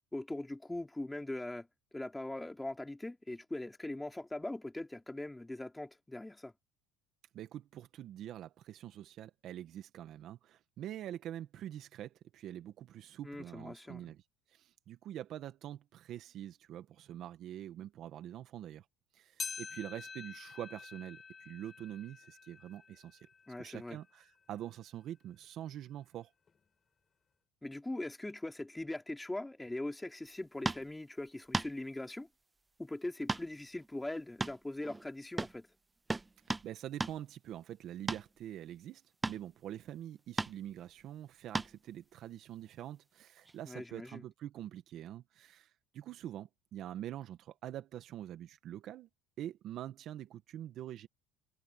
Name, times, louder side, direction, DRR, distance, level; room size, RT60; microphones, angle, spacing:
voice 1, 0.1-1.7 1.9-6.5 13.2-14.1 23.5-24.0 27.6-32.3 32.8-35.7 43.7-44.2, left 1 dB, 10° left, 3.8 m, -41 dB
voice 2, 7.3-14.2 14.5-18.9 19.1-23.2 23.6-26.3 36.6-49.1 49.4-51.1, right 11 dB, 55° right, 1.7 m, -45 dB
sound 1, 19.4-24.0 24.5-24.6 25.4-25.5 26.5-26.6, left 5 dB, 30° left, 6.7 m, -47 dB
sound 2, 30.6-30.9 31.5-31.7 33.3-33.5 33.8-33.9 34.4-35.1 35.4-35.6 36.1-36.7 37.0-37.2 38.1-38.3 39.2-39.5 40.4-40.6 41.5-41.8 43.4-43.5, right 3 dB, 15° right, 0.4 m, -35 dB
supercardioid pair, 105°, 0 cm